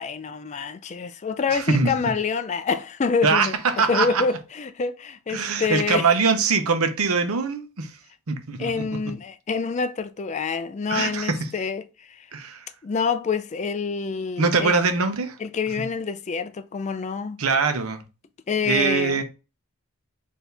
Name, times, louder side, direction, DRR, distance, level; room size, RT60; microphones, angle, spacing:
voice 1, 0.0-3.5 3.9-6.1 8.6-12.2 12.8-14.7 15.4-17.4 18.5-19.2, left 5 dB, 35° left, 0.4 m, -27 dB
voice 2, 1.5-1.9 3.2-4.2 5.3-7.9 8.3-8.8 10.9-11.5 12.3-12.7 14.4-15.4 15.8-15.9 17.4-18.0 18.6-19.2, right 4 dB, 80° right, 0.8 m, -23 dB
4.4 x 2.8 x 3.3 m
head